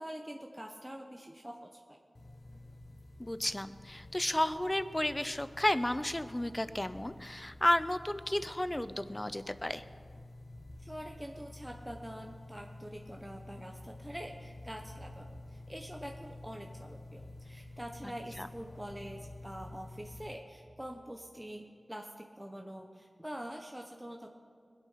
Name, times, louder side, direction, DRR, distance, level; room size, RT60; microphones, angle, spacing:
voice 1, 0.0-2.0 10.8-24.3, equal, 10° right, 2 dB, 1.1 m, -45 dB
sound 1, 2.1-20.3, left 2 dB, 55° left, 1.2 m, -50 dB
voice 2, 3.2-9.8 18.4-18.5, left 1 dB, 20° left, 13 dB, 0.7 m, -32 dB
21.0 x 8.5 x 5.7 m, 2.3 s
cardioid pair, 45°, 0 cm